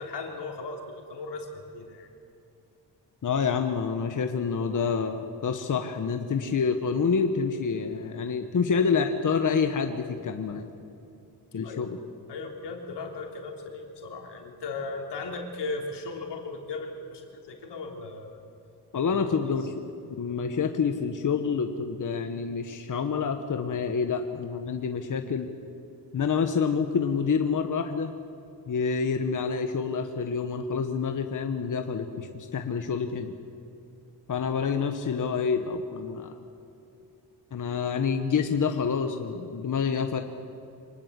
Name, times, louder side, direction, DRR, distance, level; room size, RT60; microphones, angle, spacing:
voice 1, 0.0-2.1 11.6-12.0 12.3-18.4 19.1-19.5, left 3 dB, 85° left, 2 dB, 3.5 m, -37 dB
voice 2, 3.2-10.7 11.5-12.0 18.9-19.7 20.1-25.5 26.1-28.1 28.7-33.3 34.3-36.4 37.5-40.2, left 5 dB, 50° left, 6 dB, 1.3 m, -27 dB
25.5 x 19.5 x 8.2 m, 2.7 s
cardioid pair, 105°, 41 cm